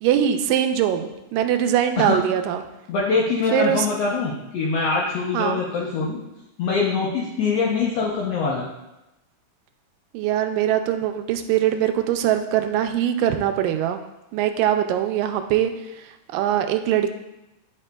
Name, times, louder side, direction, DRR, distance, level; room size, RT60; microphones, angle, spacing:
voice 1, 0.0-2.6 3.5-3.9 5.3-5.6 10.1-14.0 14.3-15.7 16.3-17.1, right 10 dB, 85° right, 7 dB, 2.2 m, -22 dB
voice 2, 2.9-6.2 6.6-8.6, left 4 dB, 75° left, -5 dB, 1.4 m, -23 dB
9.6 x 4.9 x 2.2 m, 0.95 s
omnidirectional pair, 3.8 m